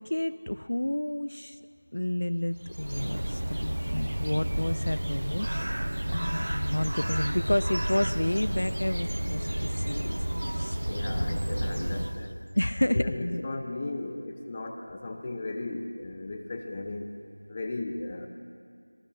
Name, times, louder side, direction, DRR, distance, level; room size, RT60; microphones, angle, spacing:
voice 1, 0.0-1.6 1.9-5.8 6.1-10.8 11.1-11.4 12.5-13.5, left 1 dB, 45° left, 13 dB, 0.6 m, -30 dB
Bird, 2.5-12.5, right 1 dB, 55° right, 0.8 m, -31 dB
voice 2, 10.9-12.4 12.9-17.1 17.5-18.3, left 2 dB, 15° left, 4 dB, 1.0 m, -36 dB
27.0 x 23.0 x 6.3 m, 2.3 s
figure-of-eight pair, 175°, 0 cm